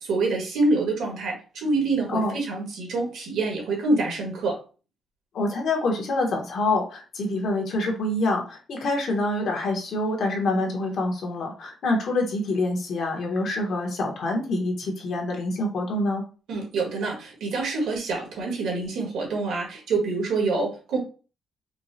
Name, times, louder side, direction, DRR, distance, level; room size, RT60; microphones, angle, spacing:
voice 1, 0.0-4.6 16.5-21.0, right 3 dB, 80° right, 0 dB, 1.5 m, -26 dB
voice 2, 5.3-16.2, left 2 dB, 60° left, 1 dB, 1.0 m, -26 dB
4.5 x 2.0 x 2.7 m, 0.36 s
cardioid pair, 130°, 0 cm